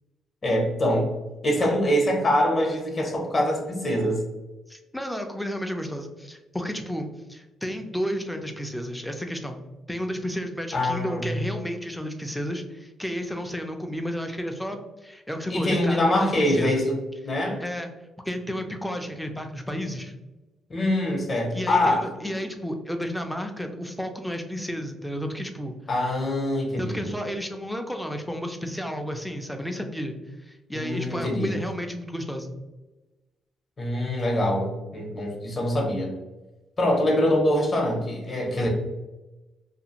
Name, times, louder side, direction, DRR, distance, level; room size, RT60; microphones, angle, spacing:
voice 1, 0.4-1.1 1.4-4.2 10.7-11.2 15.5-16.9 17.2-17.6 20.7-22.1 25.9-27.2 30.7-31.6 33.8-36.1 36.8-38.7, left 1 dB, 35° left, 1 dB, 0.7 m, -24 dB
voice 2, 4.7-9.6 9.9-16.8 17.6-17.9 18.3-20.1 21.5-25.7 26.8-32.6, equal, 5° left, 5 dB, 0.4 m, -32 dB
2.5 x 2.4 x 2.8 m, 1.1 s
cardioid pair, 90°, 0 cm